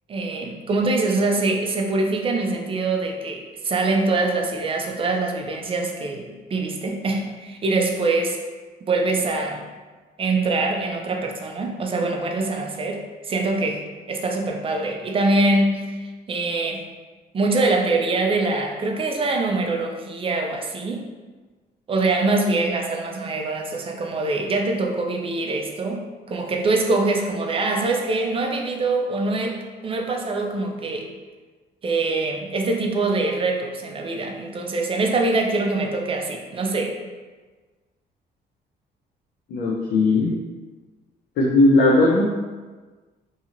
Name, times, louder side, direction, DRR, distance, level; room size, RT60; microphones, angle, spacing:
voice 1, 0.1-8.4 8.9-9.7 10.2-16.8 17.3-21.1 21.9-31.1 31.8-37.0, right 2 dB, 30° right, 2 dB, 0.4 m, -24 dB
voice 2, 39.5-40.3 41.4-42.2, left 2 dB, 75° left, -4 dB, 0.5 m, -17 dB
2.8 x 2.7 x 2.5 m, 1.3 s
cardioid pair, 105°, 18 cm